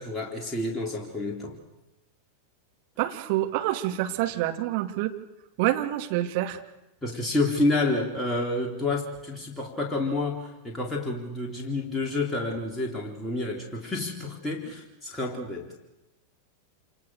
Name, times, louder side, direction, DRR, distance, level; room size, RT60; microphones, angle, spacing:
voice 1, 0.0-1.6 7.0-15.7, left 2 dB, 10° left, -1 dB, 4.0 m, -29 dB
voice 2, 3.0-5.1 5.6-6.6, right 14 dB, 45° right, 4 dB, 2.7 m, -27 dB
28.0 x 28.0 x 6.6 m, 0.96 s
figure-of-eight pair, 90°, 0 cm